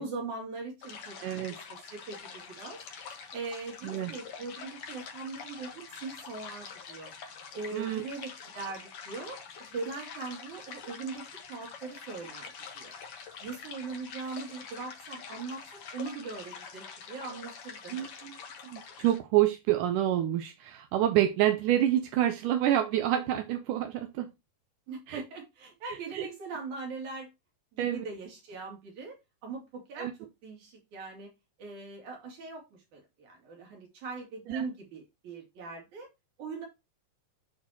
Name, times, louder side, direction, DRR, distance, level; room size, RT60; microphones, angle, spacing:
voice 1, 0.0-2.8 3.1-7.1 7.5-9.4 9.7-13.0 13.4-18.1 24.9-27.3 27.7-29.2 29.4-30.1 30.4-31.3 31.6-36.1 36.4-36.7, right 4 dB, 65° right, 3.9 m, -41 dB
sound 1, 0.8-19.2, left 6 dB, 55° left, 1.9 m, -45 dB
voice 2, 1.2-1.6 3.8-4.1 7.7-8.0 17.9-24.3 25.1-25.2 25.9-26.3 27.8-28.0 30.0-30.1 34.5-34.6, right 12 dB, 80° right, 2.2 m, -28 dB
11.5 x 4.2 x 2.9 m
omnidirectional pair, 3.9 m